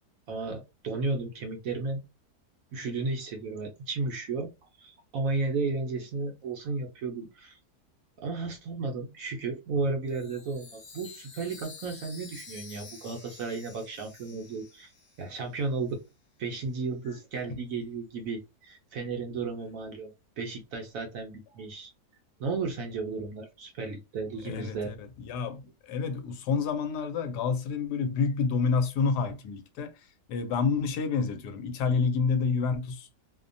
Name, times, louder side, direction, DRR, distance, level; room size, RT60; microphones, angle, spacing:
voice 1, 0.3-2.0 2.7-4.5 4.8-7.6 8.2-14.9 15.2-16.0 16.4-21.9 22.4-24.9, right 3 dB, 70° right, 0.9 m, -33 dB
Chime, 10.1-15.6, left 4 dB, 55° left, 1.1 m, -49 dB
voice 2, 24.4-33.1, left 5 dB, 80° left, 1.1 m, -29 dB
2.7 x 2.1 x 2.5 m
omnidirectional pair, 1.8 m